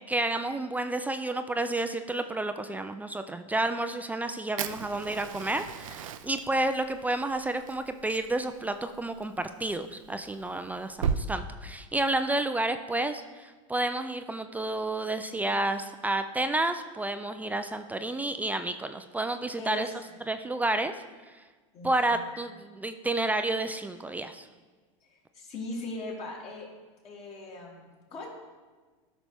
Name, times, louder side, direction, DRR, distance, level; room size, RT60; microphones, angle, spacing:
voice 1, 0.1-19.9 20.3-20.9 21.8-22.5 22.8-24.5, right 2 dB, 10° right, 9 dB, 0.4 m, -30 dB
Fire, 4.6-11.2, right 7 dB, 90° right, 0.5 m, -37 dB
voice 2, 19.3-20.2 21.7-22.2 25.0-26.7 27.0-28.3, left 2 dB, 40° left, -3 dB, 2.9 m, -40 dB
13.0 x 6.0 x 3.5 m, 1.4 s
supercardioid pair, 110°, 17 cm